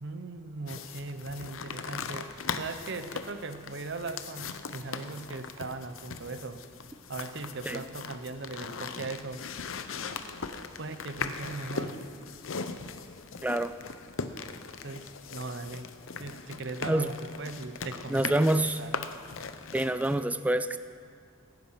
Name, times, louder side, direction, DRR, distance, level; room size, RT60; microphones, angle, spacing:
voice 1, 0.0-6.6 7.1-9.4 10.8-12.0 14.8-15.9 16.2-19.0, right 3 dB, 60° right, 10 dB, 0.9 m, -39 dB
sound 1, 0.7-20.2, left 5 dB, 80° left, 0.7 m, -39 dB
voice 2, 13.4-13.7 16.9-17.1 18.1-18.8 19.7-20.8, right 1 dB, 5° right, 11 dB, 0.4 m, -26 dB
17.0 x 10.5 x 5.8 m, 2.2 s
head